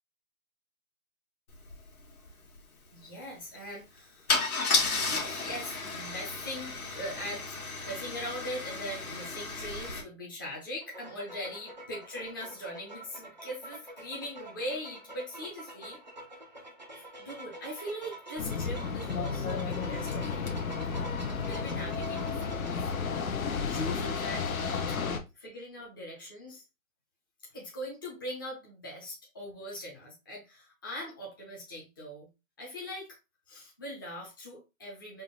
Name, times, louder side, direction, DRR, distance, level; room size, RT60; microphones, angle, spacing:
Car / Engine starting / Idling, 1.7-1.8 2.0-2.3 4.3-10.0, left 4 dB, 90° left, 1.7 m, -32 dB
voice 1, 2.9-4.3 4.8-16.0 17.0-20.8 21.4-22.9 23.6-25.0 25.3-26.6 27.5-32.3 32.6-33.2 33.5-35.2, equal, 15° left, -5 dB, 0.6 m, -41 dB
sound 1, 10.8-22.7, right 2 dB, 35° right, 0.4 m, -47 dB
sound 2, 18.4-25.2, left 5 dB, 75° left, 0.9 m, -32 dB
3.7 x 2.4 x 3.7 m, 0.26 s
hypercardioid pair, 175°, 42 cm